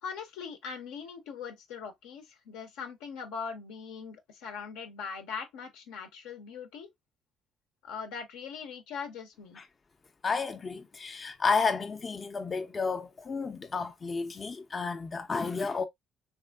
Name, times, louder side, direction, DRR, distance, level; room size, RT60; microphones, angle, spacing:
voice 1, 0.0-6.9 7.8-9.6, left 6 dB, 80° left, 0.7 m, -41 dB
voice 2, 10.2-15.9, left 4 dB, 35° left, 0.5 m, -31 dB
3.6 x 3.0 x 2.2 m
supercardioid pair, 60°, 0 cm